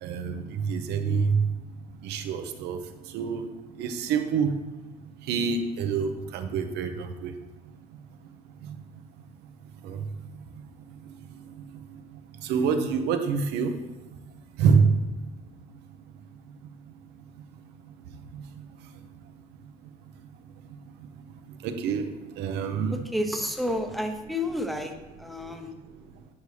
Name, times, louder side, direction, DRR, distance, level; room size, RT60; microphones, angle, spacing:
voice 1, 0.0-1.4 2.0-2.8 3.1-3.4 3.8-4.5 5.3-7.3 8.6-8.8 9.8-10.0 12.4-13.7 14.6-14.9 18.3-18.6 21.6-22.1 22.4-23.0, right 6 dB, 85° right, 6 dB, 0.8 m, -26 dB
voice 2, 23.1-24.9 25.2-25.7, left 1 dB, ahead, 5 dB, 0.8 m, -30 dB
8.5 x 5.3 x 3.2 m, 1.1 s
cardioid pair, 110°, 17 cm